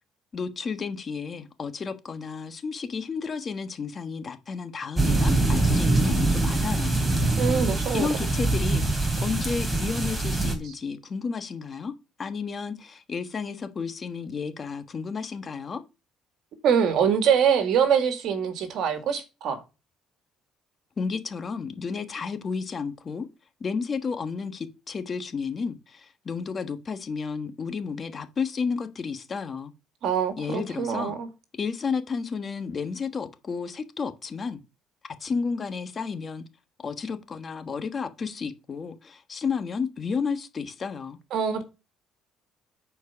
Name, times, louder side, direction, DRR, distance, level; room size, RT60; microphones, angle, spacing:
voice 1, 0.3-7.0 7.9-11.9 12.2-15.8 21.0-23.3 23.6-29.7 30.4-31.1 31.5-34.6 35.2-36.4 36.8-41.2, left 5 dB, 35° left, 1.3 m, -32 dB
sound 1, 5.0-10.5, right 2 dB, 15° right, 3.3 m, -24 dB
voice 2, 7.4-8.1 16.6-19.6 30.0-31.3 41.3-41.6, right 7 dB, 65° right, 2.0 m, -24 dB
9.7 x 4.6 x 5.7 m
cardioid pair, 90°, 0 cm